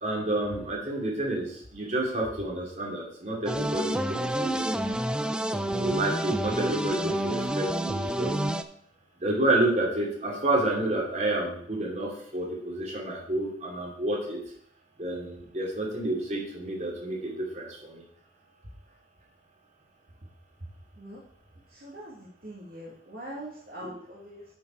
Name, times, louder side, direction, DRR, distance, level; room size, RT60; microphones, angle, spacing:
voice 1, 0.0-4.8 5.7-8.3 9.2-14.4 15.0-18.0 23.8-23.9, right 1 dB, 40° right, -3 dB, 2.6 m, -29 dB
sound 1, 3.5-8.6, right 1 dB, 5° right, 0.3 m, -29 dB
voice 2, 21.7-24.4, right 1 dB, 60° right, -5 dB, 1.9 m, -42 dB
10.0 x 4.8 x 4.6 m, 0.64 s
head